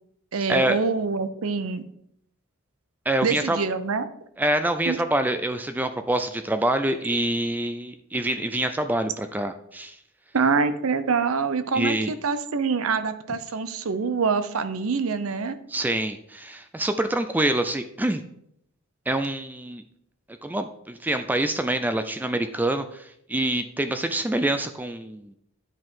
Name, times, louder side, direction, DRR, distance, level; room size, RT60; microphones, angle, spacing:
voice 1, 0.3-1.8 3.2-4.1 4.9-5.0 10.3-15.6, right 5 dB, 80° right, 12 dB, 0.6 m, -25 dB
voice 2, 3.1-3.6 4.4-10.0 11.7-12.1 15.7-18.2 19.1-19.8 20.4-25.3, right 1 dB, 10° right, 9 dB, 0.3 m, -26 dB
10.0 x 5.2 x 3.7 m, 0.73 s
head